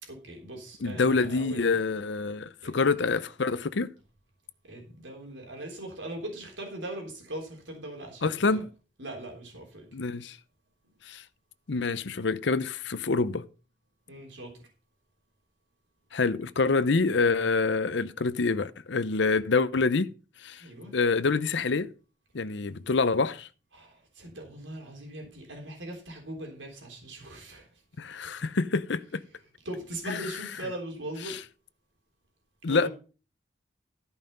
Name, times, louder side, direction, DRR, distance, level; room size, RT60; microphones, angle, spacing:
voice 1, 0.0-1.8 2.6-2.7 4.6-8.6 9.0-9.9 14.1-14.5 20.6-21.0 23.7-27.7 29.6-31.4 32.7-32.9, right 1 dB, 75° right, 3.6 m, -40 dB
voice 2, 0.8-3.9 8.2-8.7 9.9-10.4 11.1-11.2 11.7-13.4 16.1-20.1 20.4-20.6 20.9-21.9 22.3-23.5 28.0-29.2 30.1-30.2 31.3-31.4 32.6-32.9, left 4 dB, 65° left, 0.7 m, -26 dB
13.5 x 5.6 x 5.4 m
head